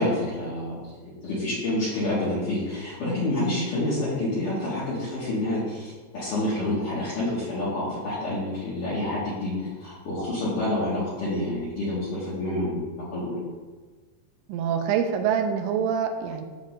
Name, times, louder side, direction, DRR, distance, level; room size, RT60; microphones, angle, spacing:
voice 1, 0.0-13.4, left 1 dB, 55° left, -10 dB, 2.7 m, -28 dB
voice 2, 14.5-16.5, right 7 dB, 85° right, 5 dB, 3.0 m, -25 dB
10.5 x 7.4 x 2.6 m, 1.4 s
omnidirectional pair, 5.2 m